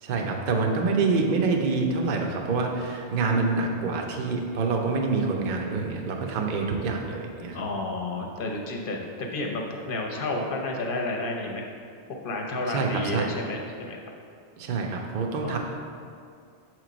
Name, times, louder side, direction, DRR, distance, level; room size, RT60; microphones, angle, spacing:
voice 1, 0.0-7.6 12.7-13.3 14.6-15.6, right 4 dB, 55° right, 2 dB, 0.7 m, -26 dB
voice 2, 7.5-11.7 12.2-14.0 15.4-15.6, left 2 dB, 55° left, 1 dB, 0.9 m, -31 dB
6.5 x 3.1 x 5.0 m, 2.3 s
omnidirectional pair, 1.1 m